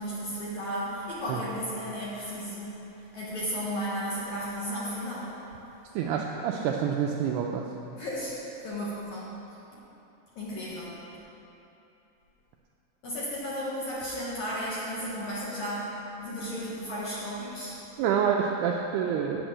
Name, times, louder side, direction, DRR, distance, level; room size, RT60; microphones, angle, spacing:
voice 1, 0.0-5.3 8.0-8.3 8.6-9.3 10.4-10.9 13.0-17.8, equal, 60° left, -7 dB, 2.2 m, -34 dB
voice 2, 5.9-7.7 18.0-19.4, right 7 dB, 85° right, 0 dB, 2.3 m, -27 dB
11.0 x 6.4 x 8.9 m, 3.0 s
omnidirectional pair, 5.3 m